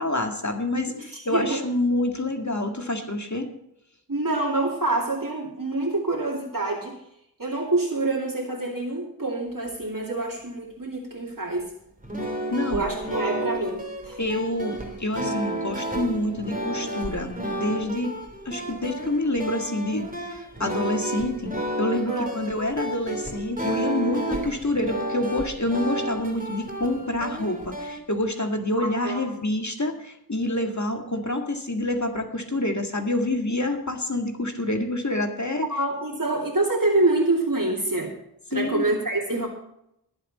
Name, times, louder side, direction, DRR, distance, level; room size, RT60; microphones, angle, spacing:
voice 1, 0.0-3.5 12.5-12.9 14.2-18.2 18.5-21.5 21.8-35.7 38.5-38.9, left 1 dB, 45° left, 4 dB, 2.0 m, -27 dB
voice 2, 0.9-1.6 4.1-7.0 7.4-11.7 12.7-14.2 22.1-22.3 29.0-29.2 35.7-38.2 38.5-39.5, right 2 dB, 55° right, -2 dB, 2.6 m, -26 dB
sound 1, 12.0-28.0, right 1 dB, 20° right, 2.8 m, -32 dB
21.0 x 7.7 x 4.2 m, 0.78 s
wide cardioid pair, 45°, 38 cm